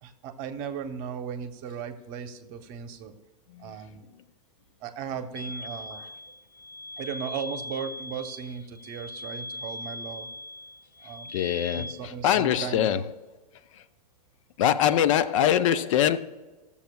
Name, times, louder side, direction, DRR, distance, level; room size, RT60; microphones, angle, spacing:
voice 1, 0.0-3.1 3.6-4.1 4.8-6.1 7.0-10.3 11.0-11.4 11.7-13.1, right 7 dB, 40° right, 1.0 m, -36 dB
sound 1, 5.4-11.9, left 1 dB, 80° left, 1.0 m, -40 dB
voice 2, 11.3-13.0 14.6-16.2, left 10 dB, 55° left, 0.5 m, -23 dB
16.5 x 7.0 x 2.3 m
hypercardioid pair, 110°, 20 cm